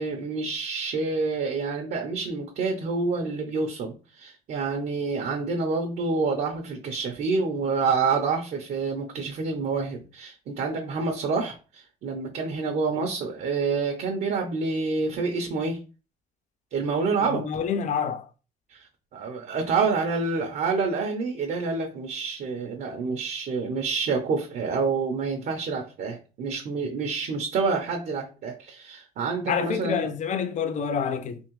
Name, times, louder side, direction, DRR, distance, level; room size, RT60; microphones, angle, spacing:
voice 1, 0.0-15.8 16.7-17.5 18.7-30.1, right 4 dB, 60° right, 0.8 m, -28 dB
voice 2, 17.3-18.2 29.5-31.4, left 7 dB, 45° left, 0.6 m, -27 dB
3.6 x 2.9 x 3.1 m
cardioid pair, 110°, 17 cm